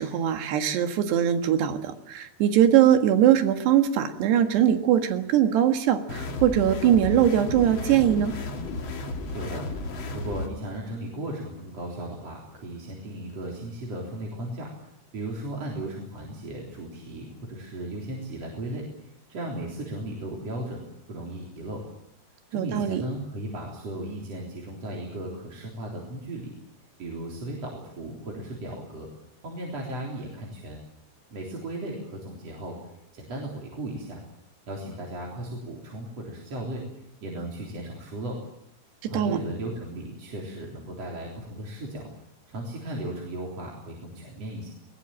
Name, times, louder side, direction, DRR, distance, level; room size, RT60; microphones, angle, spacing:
voice 1, 0.0-8.4 22.5-23.0 39.0-39.4, right 10 dB, 80° right, 7 dB, 3.8 m, -21 dB
sound 1, 6.1-10.5, left 2 dB, 40° left, 2.1 m, -33 dB
voice 2, 9.0-9.7 10.1-14.7 15.1-21.8 22.5-26.5 27.0-29.1 29.4-30.8 31.3-32.8 33.1-34.2 34.7-36.9 37.2-38.4 39.1-42.1 42.5-44.7, right 1 dB, 40° right, -2 dB, 4.5 m, -36 dB
21.0 x 20.0 x 9.0 m, 0.77 s
omnidirectional pair, 4.7 m